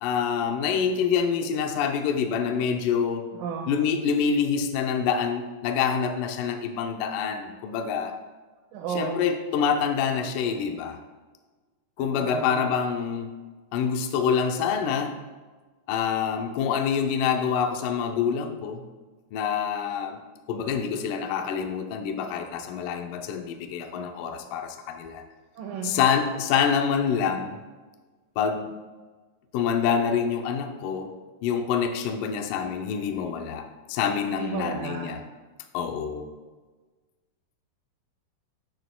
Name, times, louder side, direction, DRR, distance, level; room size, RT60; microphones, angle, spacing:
voice 1, 0.0-3.2 3.7-8.2 9.0-11.0 12.0-13.3 13.7-15.2 15.9-18.8 19.3-20.2 20.5-25.2 25.8-27.6 28.4-28.7 29.5-31.1 31.4-35.2 35.7-36.3, left 7 dB, 80° left, 5 dB, 2.0 m, -26 dB
voice 2, 3.3-3.7 8.7-9.2 12.0-12.6 25.6-26.0 34.3-35.1, right 5 dB, 75° right, 0 dB, 2.3 m, -33 dB
10.0 x 9.1 x 2.2 m, 1.3 s
omnidirectional pair, 4.4 m